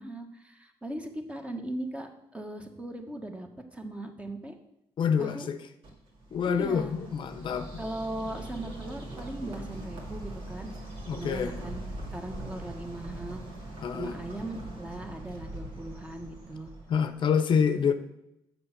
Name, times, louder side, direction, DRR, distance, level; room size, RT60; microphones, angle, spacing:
voice 1, 0.0-4.5 5.2-5.5 6.5-6.9 7.8-10.7 11.1-11.8 12.1-13.4 13.9-16.7, right 1 dB, 10° right, 5 dB, 1.3 m, -38 dB
voice 2, 5.0-5.6 6.3-7.7 11.1-11.6 13.8-14.2 16.9-17.9, left 7 dB, 50° left, 10 dB, 0.8 m, -27 dB
Bird, 5.8-17.2, right 1 dB, 65° right, 2.5 m, -42 dB
6.8 x 6.7 x 5.9 m, 0.82 s
cardioid pair, 85°, 10 cm